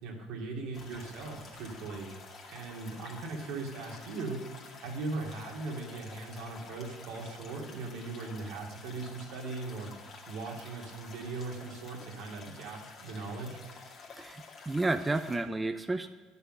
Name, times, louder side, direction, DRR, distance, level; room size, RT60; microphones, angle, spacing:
voice 1, 0.0-2.1 2.5-4.4 4.8-9.9 10.3-13.6, right 3 dB, 80° right, 0 dB, 2.7 m, -39 dB
sound 1, 0.7-15.4, left 4 dB, 40° left, 2.3 m, -50 dB
voice 2, 14.2-16.1, right 2 dB, 15° right, 8 dB, 0.5 m, -31 dB
10.5 x 6.8 x 7.6 m, 1.5 s
cardioid pair, 110°, 0 cm